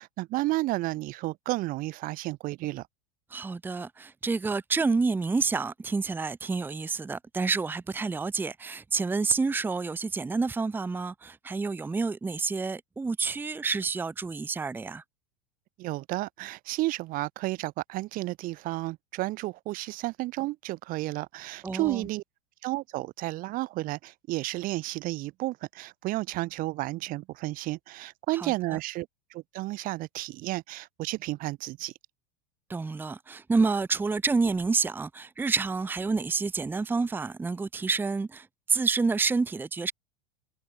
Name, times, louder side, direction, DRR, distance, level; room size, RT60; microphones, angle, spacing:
voice 1, 0.0-2.9 15.8-22.2 22.6-31.9, right 19 dB, 45° right, 1.3 m, -32 dB
voice 2, 3.3-15.0 21.6-22.1 28.3-28.8 32.7-39.9, right 4 dB, 10° right, 0.9 m, -29 dB
hypercardioid pair, 110°, 19 cm